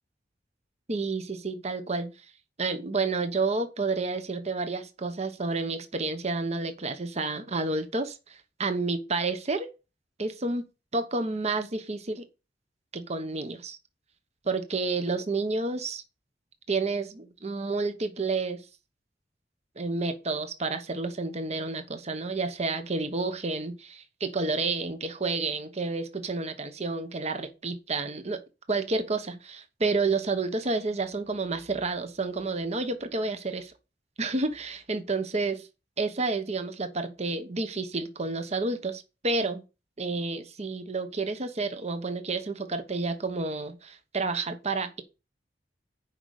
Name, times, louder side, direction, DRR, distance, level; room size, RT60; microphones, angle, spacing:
voice 1, 0.9-2.1 2.6-8.2 8.6-9.7 10.2-10.6 10.9-12.2 12.9-13.8 14.4-16.0 16.7-18.6 19.8-28.4 28.7-33.7 34.2-35.7 36.0-39.6 40.0-45.0, right 3 dB, 40° right, 1.0 m, -30 dB
7.1 x 5.3 x 6.4 m
head